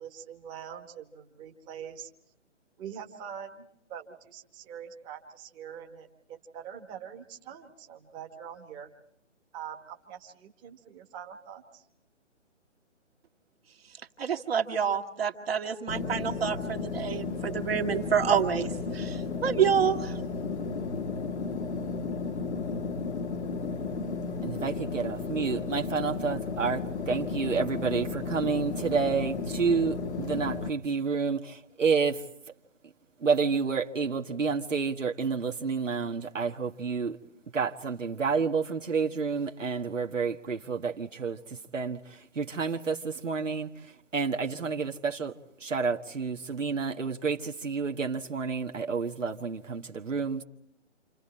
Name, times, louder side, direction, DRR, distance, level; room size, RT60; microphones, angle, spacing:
voice 1, 0.0-2.1 2.8-8.9 9.5-11.8, right 8 dB, 10° right, 3 dB, 1.3 m, -44 dB
voice 2, 14.2-20.2, right 7 dB, 55° right, 4 dB, 2.2 m, -28 dB
sound 1, 15.9-30.7, left 4 dB, 65° left, 1.3 m, -34 dB
voice 3, 24.4-32.2 33.2-37.2 37.5-45.3 45.6-50.4, right 5 dB, 85° right, 2 dB, 1.7 m, -29 dB
29.0 x 28.5 x 4.4 m, 0.73 s
figure-of-eight pair, 150°, 37 cm